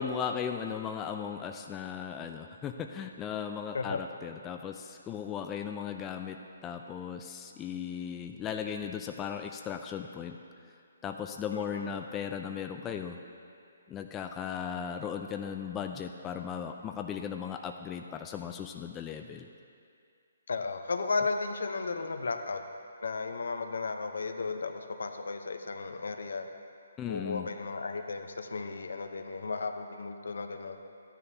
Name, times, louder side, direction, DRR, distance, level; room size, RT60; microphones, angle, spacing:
voice 1, 0.0-10.4 11.0-13.2 13.9-19.5 27.0-27.5, left 7 dB, 15° left, 4 dB, 0.4 m, -37 dB
voice 2, 11.5-11.9 20.5-22.6 23.0-26.5 27.1-30.8, left 4 dB, 70° left, 6 dB, 0.7 m, -34 dB
13.5 x 9.9 x 2.8 m, 2.4 s
figure-of-eight pair, 140°, 0 cm